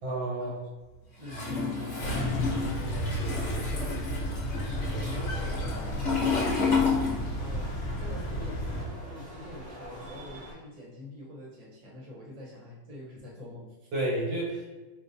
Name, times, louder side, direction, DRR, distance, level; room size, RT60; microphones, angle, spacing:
voice 1, 0.0-0.6 2.9-3.5 4.6-5.2 13.9-14.7, right 1 dB, 70° right, -3 dB, 1.5 m, -33 dB
Toilet flush, 1.2-7.7 7.9-9.5, left 4 dB, 45° left, 1.1 m, -31 dB
voice 2, 1.2-4.1 5.1-6.2 7.4-7.7 8.0-13.9, left 1 dB, 30° right, -5 dB, 0.9 m, -45 dB
sound 1, 2.0-8.8, equal, 65° left, 0.7 m, -33 dB
sound 2, 4.7-10.5, equal, 90° right, 1.8 m, -44 dB
4.5 x 2.3 x 2.7 m, 1.1 s
omnidirectional pair, 1.7 m